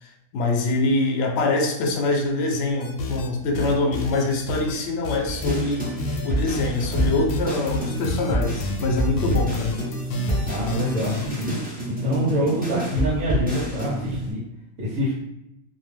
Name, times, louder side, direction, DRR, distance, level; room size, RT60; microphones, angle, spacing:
voice 1, 0.0-5.9 6.2-9.7, left 2 dB, 65° left, 2 dB, 0.7 m, -24 dB
sound 1, 2.8-3.3 3.5-4.8 5.0-11.5, left 2 dB, 90° left, 1.1 m, -29 dB
sound 2, 5.2-14.3, right 1 dB, 15° right, 0.3 m, -28 dB
voice 2, 10.5-11.6 11.9-14.4 14.8-15.1, equal, 75° right, -6 dB, 1.2 m, -25 dB
2.8 x 2.1 x 3.2 m, 0.87 s
omnidirectional pair, 1.5 m